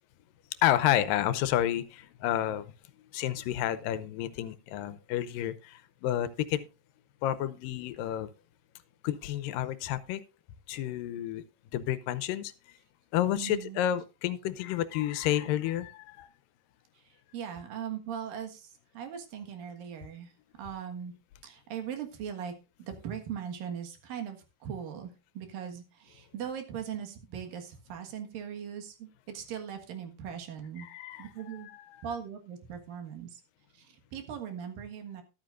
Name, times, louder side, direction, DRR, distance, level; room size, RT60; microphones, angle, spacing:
voice 1, 0.6-2.7 3.1-6.7 7.2-8.3 9.0-10.2 10.7-11.4 11.7-12.8 13.1-16.3 30.8-32.1, left 12 dB, 90° left, 13 dB, 2.4 m, -30 dB
voice 2, 13.3-13.8 17.3-20.3 20.6-21.1 21.4-22.5 22.8-30.9 31.2-31.7 32.0-33.4 33.8-35.2, right 8 dB, 85° right, 5 dB, 3.3 m, -39 dB
13.0 x 12.0 x 2.5 m, 0.30 s
omnidirectional pair, 3.9 m